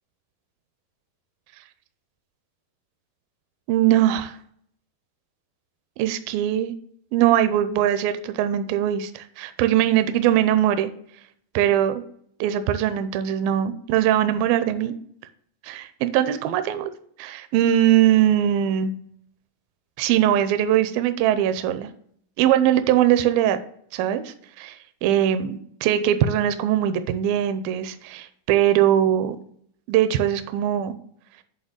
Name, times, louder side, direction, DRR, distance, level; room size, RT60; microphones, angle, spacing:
voice 1, 3.7-4.4 6.0-6.7 7.1-10.9 11.5-12.0 12.4-15.0 15.6-16.9 17.2-18.9 20.0-21.9 22.4-23.6 23.9-29.4 29.9-30.9, right 11 dB, 80° right, 10 dB, 2.3 m, -21 dB
8.8 x 3.9 x 6.6 m, 0.64 s
omnidirectional pair, 4.4 m